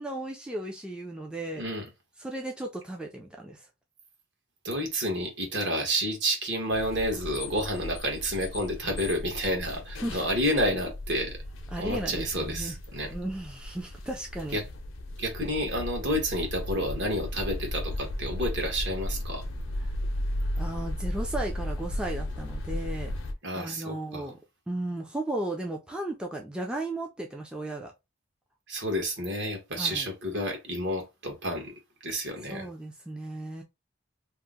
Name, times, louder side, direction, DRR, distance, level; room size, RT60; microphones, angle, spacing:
voice 1, 0.0-1.6 2.2-3.7 10.0-10.2 11.7-12.8 13.1-14.6 19.8-19.9 20.6-23.1 23.6-24.4 24.7-27.9 29.7-30.1 32.5-33.6, right 1 dB, 5° right, 0.3 m, -35 dB
voice 2, 1.5-1.8 4.6-11.4 11.8-13.1 14.5-14.6 15.2-19.4 23.4-24.3 28.7-31.7 32.0-32.7, equal, 60° right, 1.2 m, -30 dB
sound 1, 6.7-23.3, left 1 dB, 85° left, 0.6 m, -35 dB
2.8 x 2.0 x 3.5 m
head